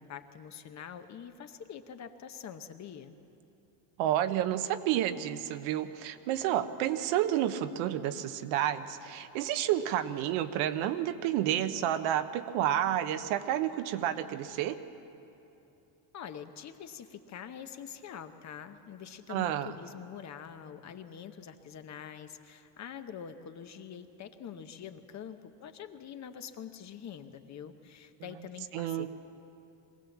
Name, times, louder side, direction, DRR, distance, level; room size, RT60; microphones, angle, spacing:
voice 1, 0.0-3.1 16.1-29.1, left 8 dB, 35° left, 8 dB, 0.9 m, -45 dB
voice 2, 4.0-14.8 19.3-19.7 28.7-29.1, right 11 dB, 75° right, 10 dB, 1.1 m, -30 dB
23.0 x 16.5 x 7.3 m, 2.9 s
cardioid pair, 140°, 48 cm